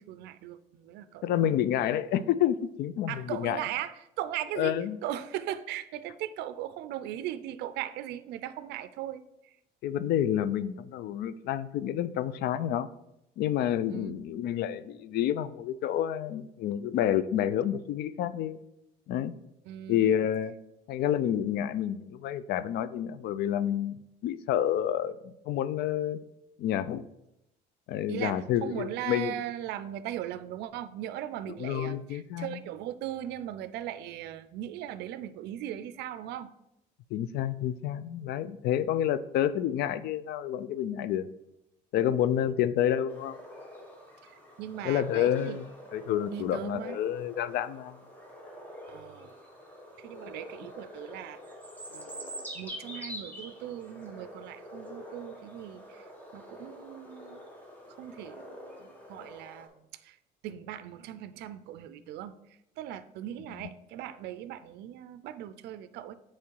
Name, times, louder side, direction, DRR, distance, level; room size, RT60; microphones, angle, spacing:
voice 1, 0.0-1.5 3.1-4.8 5.0-9.6 13.9-14.2 19.7-20.2 28.1-36.5 42.4-42.5 44.2-45.6 46.3-47.0 48.9-49.4 50.0-51.6 51.9-56.1 56.3-57.4 58.0-60.2 60.4-66.1, right 12 dB, 80° right, 13 dB, 0.4 m, -39 dB
voice 2, 1.2-3.6 4.6-5.0 9.8-12.9 13.4-18.6 19.1-19.3 19.9-20.5 20.9-24.0 24.2-26.2 26.6-27.1 27.9-29.4 31.6-32.6 37.1-41.3 41.9-43.4 44.8-45.7 45.9-48.0, left 10 dB, 75° left, 15 dB, 0.4 m, -29 dB
sound 1, 43.1-59.7, equal, 10° left, 1.5 m, -46 dB
8.3 x 3.2 x 4.5 m, 0.85 s
cardioid pair, 110°, 17 cm